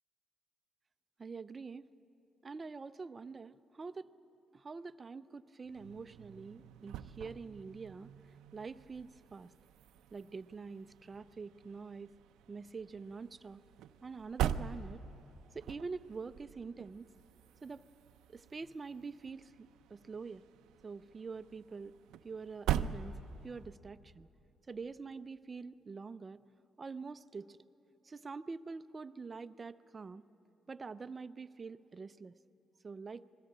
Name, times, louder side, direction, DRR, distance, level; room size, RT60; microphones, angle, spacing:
voice 1, 1.2-1.9 2.4-4.1 4.5-8.1 8.5-9.5 10.1-12.1 12.5-13.6 14.0-15.0 15.5-17.1 17.6-17.9 18.3-20.4 20.8-21.9 22.2-23.2 23.4-24.3 24.7-26.4 26.8-27.6 28.0-30.2 30.7-32.4 32.8-33.3, right 4 dB, 30° right, 14 dB, 0.5 m, -45 dB
sound 1, 5.6-23.7, right 10 dB, 90° right, 0.5 m, -43 dB
20.5 x 16.0 x 8.8 m, 2.9 s
cardioid pair, 90°, 0 cm